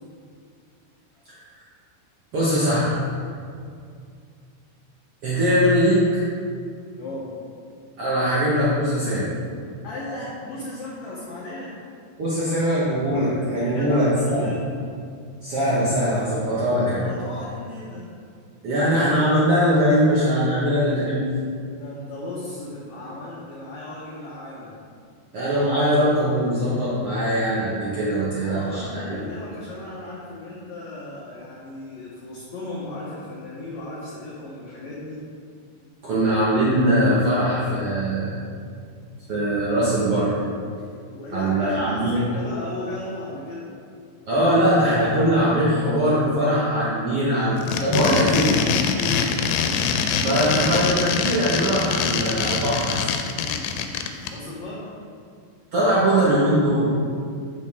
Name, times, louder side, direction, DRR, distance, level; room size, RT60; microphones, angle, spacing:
voice 1, 2.3-3.0 5.2-6.2 8.0-9.3 12.2-14.5 15.4-17.0 18.6-21.3 25.3-29.2 36.0-38.3 39.3-40.4 41.3-42.1 44.3-48.6 50.2-53.0 55.7-56.9, equal, 80° right, -9 dB, 1.3 m, -21 dB
voice 2, 7.0-7.4 9.8-11.8 13.6-14.7 17.0-18.1 21.7-24.7 28.4-35.2 40.8-43.7 48.9-49.4 54.2-54.9, left 2 dB, 70° left, -6 dB, 1.7 m, -36 dB
sound 1, 47.6-54.3, left 7 dB, 90° left, 2.7 m, -24 dB
8.6 x 7.0 x 3.5 m, 2.3 s
omnidirectional pair, 4.8 m